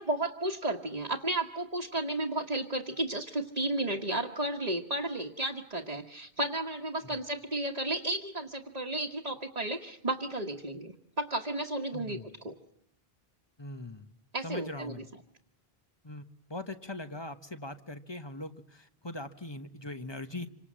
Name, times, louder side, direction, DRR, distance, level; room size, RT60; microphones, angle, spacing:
voice 1, 0.0-12.2 12.4-12.5 14.3-14.9, right 1 dB, 40° right, 0 dB, 1.6 m, -33 dB
voice 2, 11.9-12.3 13.6-14.1 14.4-15.1 16.0-20.5, left 2 dB, 25° left, 9 dB, 1.2 m, -41 dB
27.0 x 25.5 x 7.6 m, 0.69 s
omnidirectional pair, 1.1 m